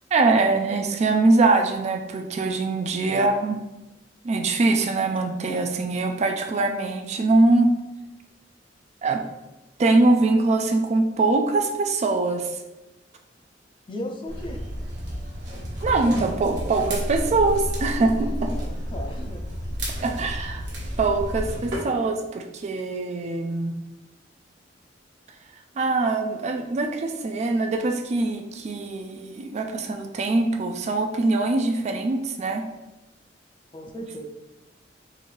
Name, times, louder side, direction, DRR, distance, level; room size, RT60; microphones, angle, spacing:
voice 1, 0.1-3.6 4.2-7.7 9.0-9.2 9.8-12.5 15.8-18.5 20.0-20.6 21.0-23.7 25.8-32.6, right 3 dB, 40° right, 4 dB, 0.3 m, -23 dB
voice 2, 13.9-14.6 18.5-19.4 33.7-34.3, equal, 30° left, 2 dB, 0.4 m, -36 dB
sound 1, 14.3-21.8, equal, 65° right, 1.1 m, -31 dB
3.8 x 2.5 x 3.1 m, 1.0 s
head